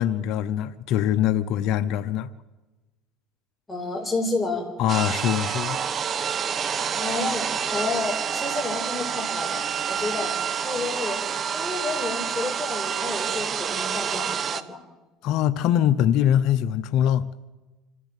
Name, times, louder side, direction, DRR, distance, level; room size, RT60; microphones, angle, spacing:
voice 1, 0.0-2.3 4.8-5.8 15.2-17.3, left 10 dB, 60° left, 0.8 m, -23 dB
voice 2, 3.7-4.7 7.0-10.4 10.6-11.2 11.5-14.8, left 3 dB, 10° left, 5.1 m, -30 dB
sound 1, 4.9-14.6, right 7 dB, 35° right, 1.1 m, -28 dB
26.0 x 14.5 x 8.3 m
supercardioid pair, 110°, 0 cm